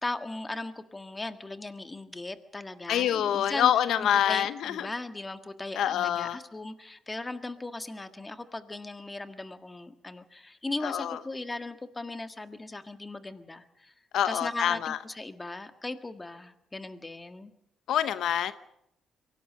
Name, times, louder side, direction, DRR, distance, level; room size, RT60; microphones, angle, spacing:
voice 1, 0.0-3.7 4.0-13.9 14.3-17.5, left 2 dB, 20° left, 9 dB, 1.7 m, -38 dB
voice 2, 2.9-4.9 5.8-6.4 10.8-11.2 14.1-15.0 17.9-18.5, left 10 dB, 75° left, 13 dB, 0.8 m, -26 dB
23.5 x 17.5 x 7.4 m, 0.79 s
cardioid pair, 90°, 0 cm